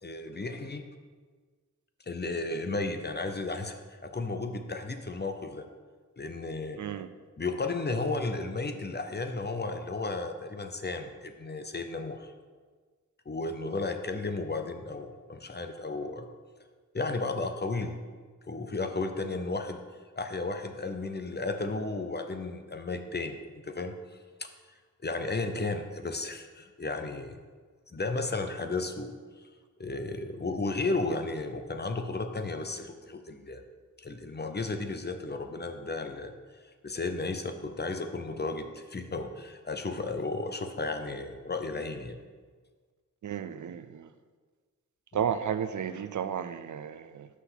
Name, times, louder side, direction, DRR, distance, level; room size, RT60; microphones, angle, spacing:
voice 1, 0.0-0.8 2.1-5.7 6.2-6.8 7.4-12.3 13.3-16.3 16.9-18.0 18.5-19.8 20.2-24.0 25.0-27.4 27.9-29.2 29.8-33.6 34.0-36.3 36.8-42.2, left 3 dB, 30° left, 6 dB, 0.7 m, -34 dB
voice 2, 6.8-7.1 43.2-44.1 45.1-47.3, right 8 dB, 65° right, 12 dB, 0.4 m, -33 dB
5.9 x 5.7 x 6.0 m, 1.5 s
wide cardioid pair, 70°, 32 cm